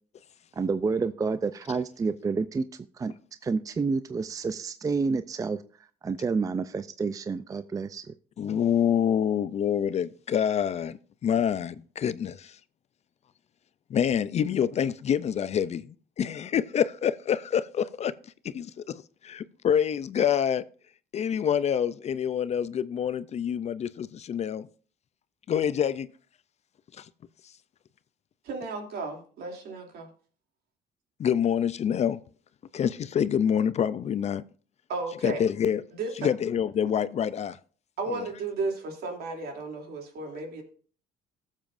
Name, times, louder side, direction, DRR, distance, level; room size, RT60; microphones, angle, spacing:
voice 1, 0.6-2.7 3.0-3.1 3.4-5.6 6.0-8.0, right 4 dB, 20° right, 0.4 m, -29 dB
voice 2, 8.4-11.0 11.2-12.5 13.9-15.8 16.2-18.1 18.4-20.6 21.1-24.7 25.5-26.1 27.0-27.1 31.2-32.2 32.7-34.4 35.2-35.8 36.2-37.6 38.1-38.2, left 8 dB, 40° left, 0.4 m, -26 dB
voice 3, 28.4-30.1 34.9-35.4 35.9-36.3 38.0-40.6, right 3 dB, 70° right, 2.8 m, -34 dB
16.5 x 7.4 x 2.6 m
cardioid pair, 110°, 17 cm